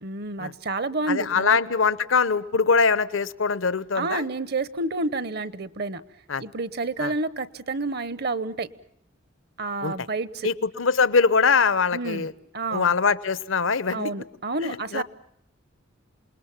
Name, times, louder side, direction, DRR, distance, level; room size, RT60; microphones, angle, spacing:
voice 1, 0.0-1.6 3.9-6.0 6.4-8.7 9.6-10.5 11.9-12.3 12.5-12.9 13.9-15.0, right 3 dB, 55° right, 16 dB, 1.0 m, -29 dB
voice 2, 1.1-4.2 6.3-6.4 7.0-7.1 9.8-9.9 10.4-12.3 12.7-14.1 14.6-15.0, left 5 dB, 80° left, 16 dB, 0.9 m, -22 dB
28.0 x 20.5 x 7.2 m, 0.72 s
head